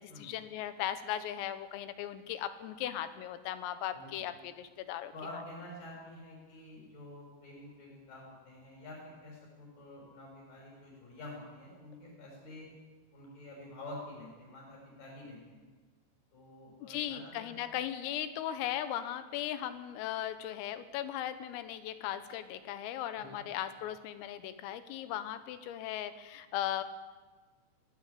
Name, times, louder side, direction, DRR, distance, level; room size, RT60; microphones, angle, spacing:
voice 1, 0.0-5.1 16.8-26.8, left 11 dB, 90° left, 11 dB, 3.8 m, -37 dB
voice 2, 3.9-4.2 5.1-12.7 13.1-15.6 16.3-17.6 23.2-23.5, left 1 dB, 45° left, -3 dB, 8.0 m, -48 dB
22.0 x 17.5 x 8.5 m, 1.3 s
omnidirectional pair, 5.8 m